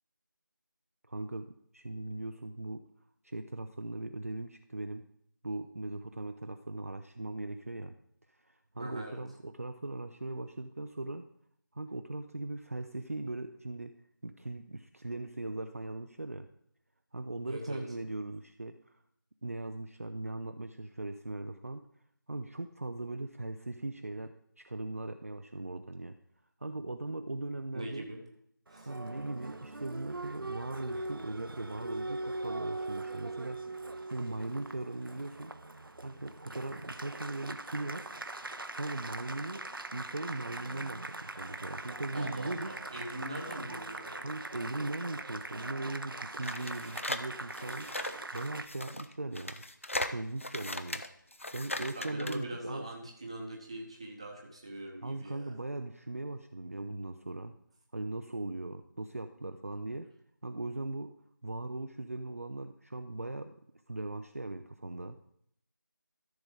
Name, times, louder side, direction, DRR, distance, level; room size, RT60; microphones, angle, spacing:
voice 1, 1.1-2.8 3.2-5.1 5.4-8.0 8.3-11.3 11.7-16.5 17.1-19.0 19.4-21.9 22.3-26.2 26.6-28.1 28.9-33.6 34.1-35.5 36.0-38.1 38.7-42.7 44.2-47.9 48.3-49.6 50.1-51.0 51.5-52.9 55.0-57.5 57.9-60.1 60.4-61.1 61.4-63.5 63.9-65.2, right 2 dB, 40° right, 7 dB, 0.4 m, -39 dB
voice 2, 8.8-9.2 17.5-17.8 27.7-28.2 28.7-28.9 42.1-44.3 51.9-55.5, right 1 dB, 15° right, 0 dB, 0.9 m, -42 dB
Applause, 28.7-48.7, right 2 dB, 75° right, 0.7 m, -42 dB
sound 1, 46.4-52.4, left 1 dB, 35° left, 0.4 m, -38 dB
13.5 x 6.1 x 3.8 m, 0.69 s
figure-of-eight pair, 170°, 12 cm